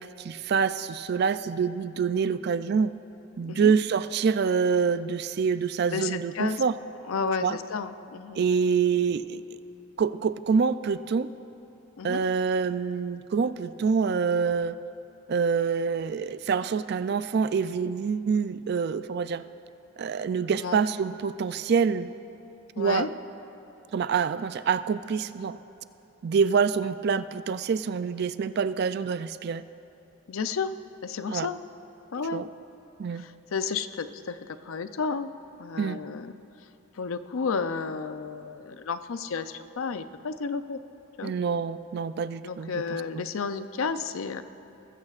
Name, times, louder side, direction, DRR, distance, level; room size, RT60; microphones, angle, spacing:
voice 1, 0.0-2.9 3.4-6.7 7.4-7.6 8.4-9.4 10.0-11.3 12.0-14.8 15.3-19.4 20.0-22.1 22.8-23.1 23.9-25.6 26.2-29.6 31.3-31.5 32.3-32.5 33.0-33.2 35.8-36.0 41.2-42.8 43.1-43.2, right 6 dB, 50° right, 13 dB, 0.3 m, -26 dB
voice 2, 5.9-6.6 7.1-8.4 12.0-12.2 20.5-20.8 22.8-23.1 30.3-30.7 31.0-31.6 32.1-32.5 33.1-35.3 35.6-36.4 36.9-40.8 41.2-41.3 42.4-44.4, left 5 dB, 75° left, 11 dB, 0.5 m, -32 dB
20.0 x 15.0 x 2.5 m, 3.0 s
head